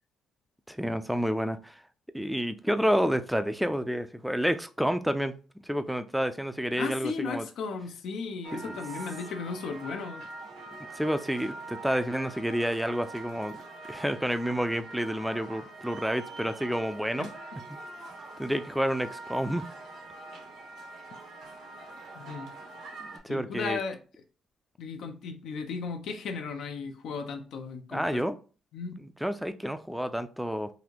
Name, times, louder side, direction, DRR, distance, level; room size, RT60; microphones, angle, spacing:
voice 1, 0.7-1.8 2.1-5.3 5.6-7.4 8.5-8.8 11.0-13.6 13.9-17.3 18.4-19.7 23.0-23.8 27.9-28.4 29.0-30.7, equal, ahead, 0.4 m, -29 dB
voice 2, 6.8-10.2 17.2-17.3 22.1-22.5 23.3-24.0 24.8-28.2 28.7-29.0, left 5 dB, 75° left, 0.6 m, -35 dB
sound 1, 8.4-23.2, right 2 dB, 80° right, 1.1 m, -44 dB
4.0 x 2.6 x 2.9 m
cardioid pair, 90°, 0 cm